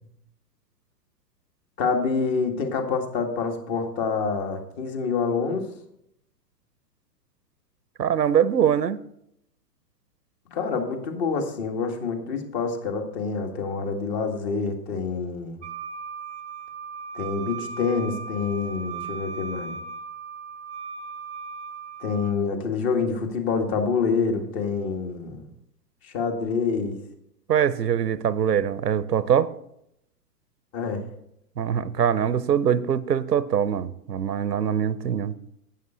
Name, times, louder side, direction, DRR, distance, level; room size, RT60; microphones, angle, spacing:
voice 1, 1.8-5.7 10.5-15.6 17.1-19.8 22.0-25.5 26.0-27.0 30.7-31.1, left 5 dB, 40° left, 2.0 m, -27 dB
voice 2, 8.0-9.0 27.5-29.5 31.6-35.3, right 8 dB, 85° right, 0.8 m, -23 dB
Wind instrument woodwind instrument, 15.6-22.4, right 5 dB, 10° right, 0.3 m, -37 dB
11.5 x 9.2 x 3.8 m
hypercardioid pair, 120°, 48 cm